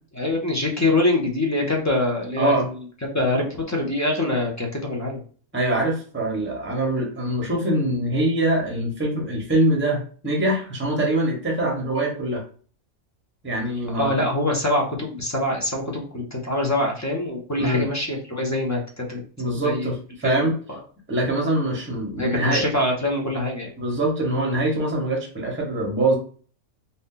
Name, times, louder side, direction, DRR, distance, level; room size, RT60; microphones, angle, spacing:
voice 1, 0.2-2.5 3.1-5.2 13.9-19.2 19.6-19.9 20.2-20.5 22.2-23.7, left 1 dB, 20° left, 0 dB, 0.4 m, -24 dB
voice 2, 2.4-2.7 5.5-12.4 13.4-14.2 17.6-17.8 19.4-20.5 21.1-22.6 23.8-26.2, right 1 dB, 10° right, -1 dB, 0.8 m, -23 dB
2.7 x 2.6 x 3.7 m, 0.42 s
omnidirectional pair, 1.4 m